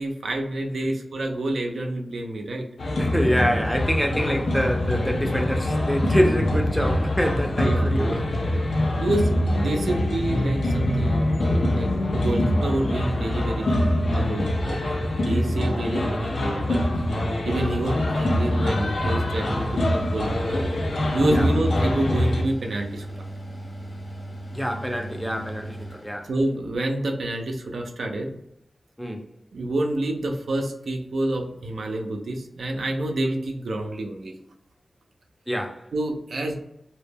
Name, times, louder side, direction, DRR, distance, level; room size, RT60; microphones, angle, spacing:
voice 1, 0.0-2.7 7.5-7.9 9.0-9.3 9.6-13.7 14.1-14.8 15.3-17.1 17.4-20.7 21.1-23.3 26.2-28.4 29.5-34.3 35.9-36.6, right 1 dB, 85° right, 0.4 m, -28 dB
sound 1, 2.8-22.4, left 1 dB, 85° left, 0.5 m, -24 dB
voice 2, 3.0-8.6 15.3-15.6 21.3-21.5 24.5-26.3 29.0-29.3 35.5-35.9, equal, 5° left, 0.4 m, -26 dB
Mechanical fan, 18.3-26.7, right 1 dB, 55° left, 0.9 m, -38 dB
2.1 x 2.1 x 3.3 m
cardioid pair, 60°, 0 cm